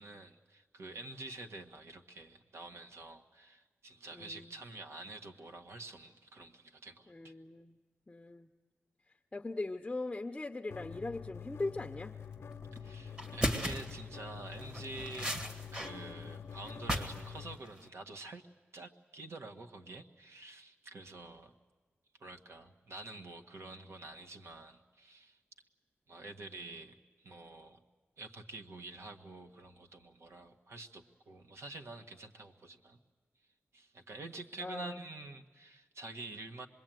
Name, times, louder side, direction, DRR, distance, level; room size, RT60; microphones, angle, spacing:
voice 1, 0.0-7.3 12.8-15.3 15.7-18.4 18.7-21.5 22.2-25.4 26.1-27.8 28.2-33.0 33.7-36.7, right 2 dB, 80° right, 6 dB, 1.6 m, -48 dB
voice 2, 4.1-4.5 7.1-7.8 8.1-8.5 9.3-12.1 34.6-35.0, left 2 dB, 20° left, 6 dB, 0.7 m, -40 dB
sound 1, 10.7-17.6, left 7 dB, 70° left, 0.8 m, -46 dB
sound 2, 12.6-12.8 13.2-14.0 14.5-15.9 16.2-17.3 17.5-17.9, equal, 25° right, 2.0 m, -36 dB
26.0 x 21.5 x 9.2 m, 1.4 s
wide cardioid pair, 125°, 4 cm